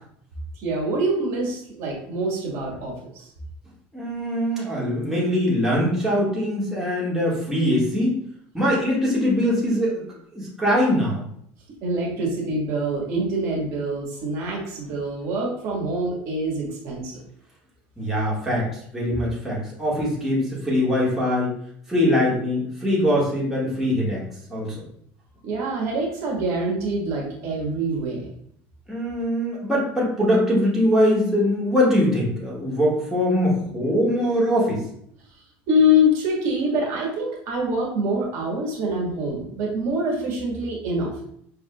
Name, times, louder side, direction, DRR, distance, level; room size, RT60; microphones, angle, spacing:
voice 1, 0.6-3.3 11.8-17.1 25.4-28.3 35.7-41.2, equal, 65° right, -2 dB, 1.4 m, -25 dB
voice 2, 3.9-8.2 8.5-10.0 10.3-11.2 18.0-21.5 21.9-24.2 24.5-24.7 28.9-34.8, equal, 5° right, -6 dB, 1.6 m, -22 dB
5.3 x 3.5 x 2.2 m, 0.67 s
cardioid pair, 135°, 6 cm